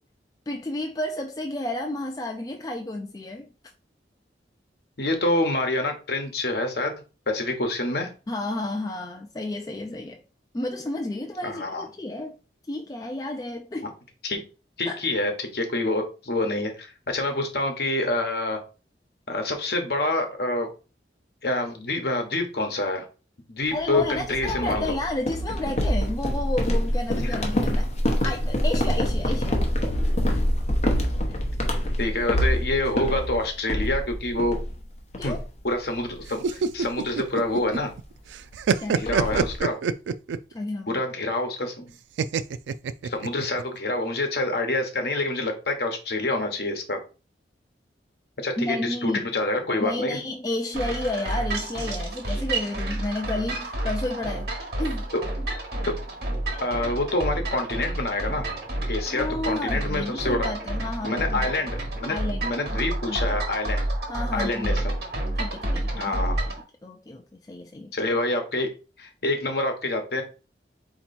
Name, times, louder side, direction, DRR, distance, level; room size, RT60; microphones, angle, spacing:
voice 1, 0.5-3.5 8.3-10.2 10.5-12.4 12.7-13.9 14.9-15.0 23.7-29.6 30.3-30.4 35.2-35.4 38.8-39.0 40.5-41.0 48.6-49.3 49.8-54.5 54.8-55.1 59.1-61.5 62.1-63.3 64.1-64.8 65.4-66.2 66.8-67.9, left 2 dB, 20° left, 0.3 m, -31 dB
voice 2, 5.0-7.0 7.3-8.1 11.4-11.9 14.2-14.4 14.8-18.6 19.3-20.7 21.4-23.0 23.5-24.9 27.2-27.5 32.0-34.6 35.2-35.4 35.6-37.9 39.0-39.8 40.9-41.9 43.0-47.0 48.4-50.2 55.1-55.2 56.6-58.5 58.9-60.5 61.0-63.9 64.3-65.0 65.9-66.4 67.9-68.7 69.0-70.2, left 2 dB, 60° left, 1.1 m, -27 dB
sound 1, 24.0-34.8 35.1-35.6 35.9-36.2 36.6-36.8 37.9-38.0 38.3-38.4 38.6-39.6, equal, 40° left, 0.9 m, -26 dB
sound 2, 36.3-38.0 38.3-40.5 42.2-43.6, right 6 dB, 85° right, 0.3 m, -25 dB
sound 3, 50.7-66.6, right 1 dB, 60° right, 1.4 m, -29 dB
4.2 x 2.9 x 4.2 m
head